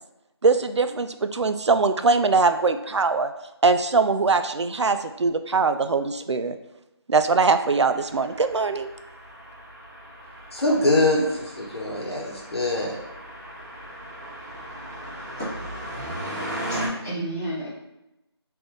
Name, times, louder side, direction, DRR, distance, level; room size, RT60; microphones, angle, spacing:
voice 1, 0.4-3.3 3.6-6.5 7.1-8.9, right 4 dB, 90° right, 9 dB, 0.4 m, -21 dB
sound 1, 7.6-16.9, right 1 dB, 40° right, 1.1 m, -37 dB
voice 2, 10.5-12.9, left 1 dB, 70° left, -3 dB, 1.0 m, -23 dB
voice 3, 16.7-17.7, right 1 dB, 5° right, -14 dB, 0.6 m, -31 dB
3.3 x 2.6 x 3.7 m, 0.92 s
figure-of-eight pair, 175°, 14 cm